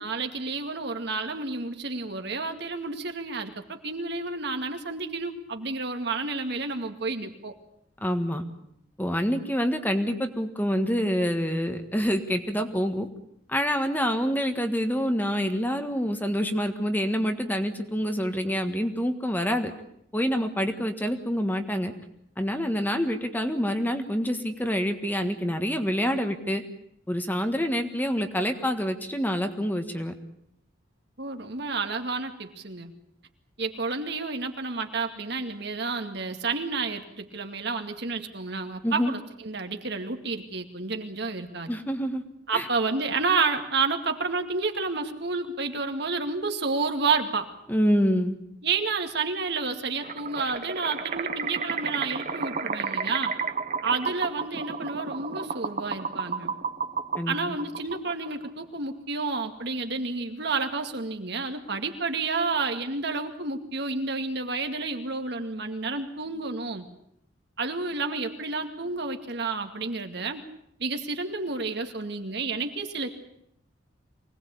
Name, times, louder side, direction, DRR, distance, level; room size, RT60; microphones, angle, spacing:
voice 1, 0.0-7.5 31.2-32.9 33.6-41.7 42.5-47.5 48.6-53.4 53.8-56.5 57.3-66.8 67.6-70.4 70.8-73.2, right 4 dB, 60° right, 5 dB, 2.3 m, -30 dB
voice 2, 8.0-8.4 9.0-13.1 13.5-19.7 20.1-21.9 22.4-26.6 27.1-30.1 38.8-39.1 41.7-42.2 42.5-42.7 47.7-48.4 57.2-57.5, equal, 10° left, 6 dB, 1.6 m, -27 dB
sound 1, 50.0-58.5, right 5 dB, 40° right, 1.3 m, -32 dB
24.5 x 19.0 x 8.5 m, 0.75 s
head